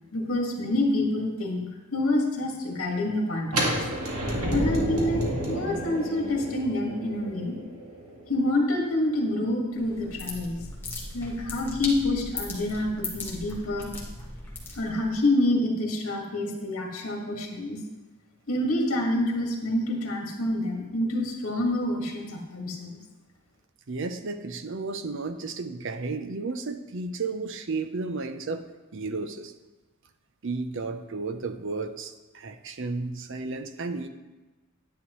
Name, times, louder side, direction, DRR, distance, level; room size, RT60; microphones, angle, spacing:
voice 1, 0.1-3.8 4.5-7.6 8.3-10.6 11.1-13.9 14.7-17.8 18.5-23.0, left 1 dB, 70° left, 0 dB, 1.8 m, -27 dB
sound 1, 3.5-9.3, right 1 dB, 90° right, 2.0 m, -31 dB
sound 2, 9.7-15.2, left 2 dB, 10° left, 1.3 m, -38 dB
voice 2, 23.9-28.6 28.9-29.5 30.4-34.1, right 3 dB, 60° right, 9 dB, 0.6 m, -33 dB
10.0 x 9.9 x 3.1 m, 1.2 s
head